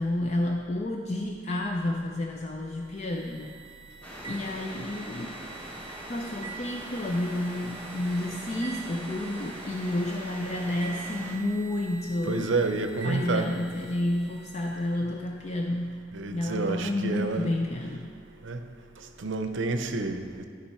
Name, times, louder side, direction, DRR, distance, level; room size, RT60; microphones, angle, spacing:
voice 1, 0.0-3.5 4.3-5.4 6.1-12.4 13.0-16.0 16.3-18.1, left 1 dB, 35° left, 1 dB, 0.4 m, -30 dB
sound 1, 2.8-15.0, right 5 dB, 25° right, 0.6 m, -46 dB
sound 2, 4.0-11.3, equal, 10° left, 1.0 m, -42 dB
voice 2, 12.2-13.5 16.1-17.5 18.4-18.6 19.0-20.5, right 3 dB, 75° right, 7 dB, 0.6 m, -29 dB
11.5 x 5.4 x 4.3 m, 2.1 s
head